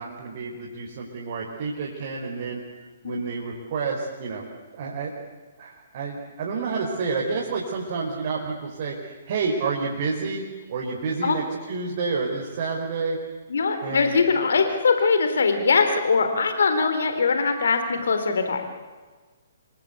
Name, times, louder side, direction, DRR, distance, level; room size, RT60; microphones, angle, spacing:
voice 1, 0.0-2.6 3.0-4.5 4.7-5.1 5.6-10.4 10.7-13.2 13.8-14.2, right 4 dB, 45° right, -2 dB, 5.1 m, -29 dB
voice 2, 13.5-18.6, left 4 dB, 60° left, 7 dB, 3.9 m, -21 dB
28.0 x 24.0 x 8.4 m, 1.4 s
figure-of-eight pair, 125°, 0 cm